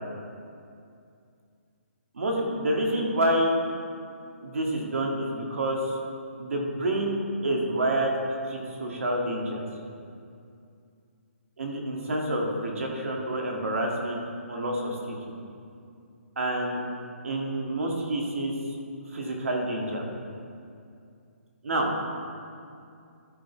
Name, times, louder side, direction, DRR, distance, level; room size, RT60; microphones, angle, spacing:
voice 1, 2.1-3.6 4.4-6.0 6.4-8.1 8.5-9.6 11.6-14.2 14.5-15.2 16.4-16.8 17.2-18.5 19.1-20.0 21.6-21.9, right 1 dB, 65° right, 0 dB, 1.9 m, -28 dB
14.0 x 5.2 x 4.5 m, 2.4 s
hypercardioid pair, 180°, 8 cm